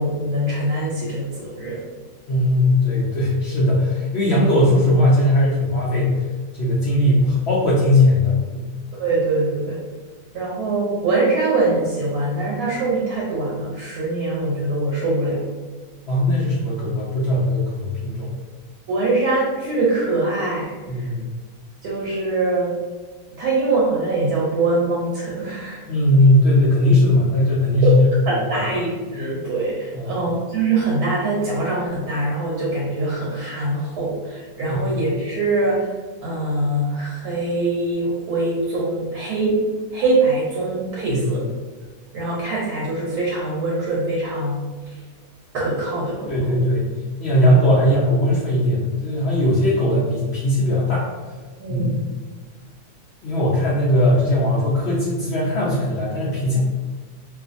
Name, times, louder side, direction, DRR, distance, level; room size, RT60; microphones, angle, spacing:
voice 1, 0.0-1.8 9.0-9.8 10.3-15.4 18.9-21.1 21.8-22.7 23.4-25.8 27.8-27.9 28.3-35.9 36.2-39.6 39.9-41.4 42.1-44.6 45.5-46.6 47.4-47.5 51.6-52.1, right 2 dB, 70° right, -5 dB, 1.1 m, -23 dB
voice 2, 2.3-6.1 6.5-8.7 16.1-18.3 20.9-21.3 25.9-28.1 28.5-28.7 29.9-30.2 34.7-34.9 41.1-41.3 46.3-46.9 47.2-51.0 51.7-52.0 53.2-56.6, left 1 dB, 80° left, -7 dB, 0.5 m, -19 dB
2.5 x 2.5 x 2.5 m, 1.4 s
omnidirectional pair, 1.8 m